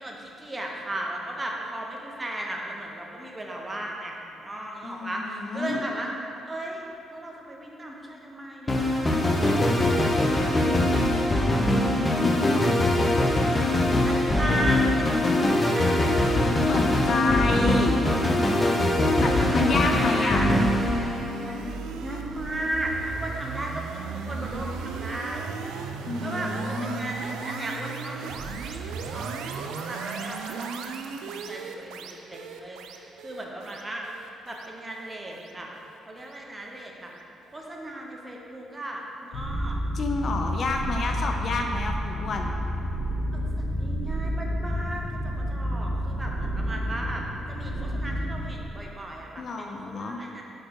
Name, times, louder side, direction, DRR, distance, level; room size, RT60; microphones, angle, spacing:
voice 1, 0.0-6.1 6.5-6.8 7.1-9.6 14.0-16.3 19.2-20.5 21.4-25.5 26.2-34.0 34.4-35.7 36.1-37.1 37.5-39.8 43.3-50.4, right 1 dB, 20° right, -1 dB, 0.8 m, -36 dB
voice 2, 4.8-5.9 11.4-12.9 16.7-18.0 18.7-18.8 19.2-20.4 26.1-27.1 39.9-42.5 49.4-50.2, left 3 dB, 50° left, 3 dB, 0.5 m, -29 dB
sound 1, 8.7-21.6, left 1 dB, 20° left, 0.8 m, -22 dB
sound 2, 20.8-36.0, right 5 dB, 90° right, 0.3 m, -36 dB
sound 3, 39.3-48.5, equal, 75° left, 1.2 m, -30 dB
4.7 x 4.3 x 4.7 m, 2.8 s
cardioid pair, 90°, 0 cm